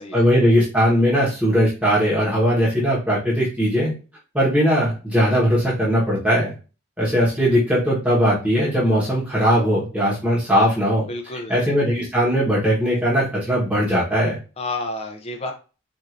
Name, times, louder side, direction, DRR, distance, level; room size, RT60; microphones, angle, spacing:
voice 1, 0.1-3.9 4.3-6.5 7.0-11.1 11.5-14.4, equal, 5° right, -7 dB, 1.1 m, -19 dB
voice 2, 11.1-11.6 14.6-15.5, left 2 dB, 30° left, 5 dB, 0.5 m, -30 dB
4.4 x 2.6 x 2.5 m, 0.34 s
head